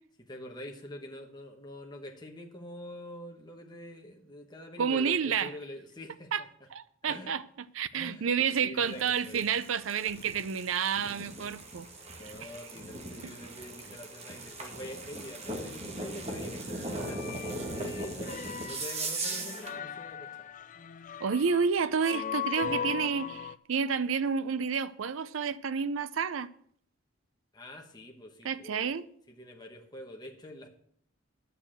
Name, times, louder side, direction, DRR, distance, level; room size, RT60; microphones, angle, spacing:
voice 1, 0.2-6.5 7.0-7.3 7.9-9.5 12.1-20.5 27.5-28.9 29.3-30.7, left 1 dB, 20° left, 1.2 m, -45 dB
voice 2, 4.8-5.5 6.3-6.4 6.7-7.4 7.7-11.9 13.2-13.3 21.2-26.5 28.4-29.0, right 6 dB, 80° right, 0.5 m, -30 dB
sound 1, 8.8-19.8, right 2 dB, 30° right, 1.8 m, -39 dB
sound 2, 17.0-23.5, left 8 dB, 40° left, 0.4 m, -39 dB
11.0 x 6.9 x 7.5 m
head